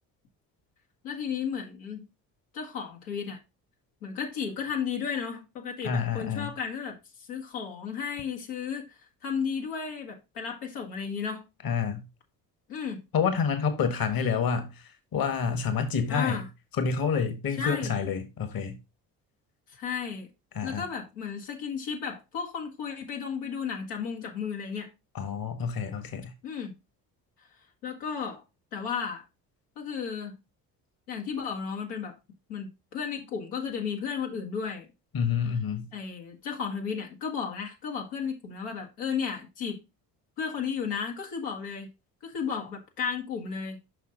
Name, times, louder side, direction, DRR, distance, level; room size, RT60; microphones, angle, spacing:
voice 1, 1.0-2.1 2.5-3.4 4.0-11.4 12.7-13.0 16.1-16.5 17.6-17.9 19.7-20.3 20.6-24.9 26.4-26.8 27.8-28.4 28.7-29.2 29.8-30.4 31.1-32.2 32.5-34.9 35.9-39.8 40.4-41.9 42.2-43.8, left 6 dB, 80° left, 1.5 m, -34 dB
voice 2, 5.8-6.5 11.6-12.0 13.1-16.4 16.8-18.8 20.5-20.8 25.1-26.3 35.1-35.9, left 6 dB, 50° left, 1.4 m, -28 dB
5.8 x 5.8 x 3.8 m
hypercardioid pair, 50°, 47 cm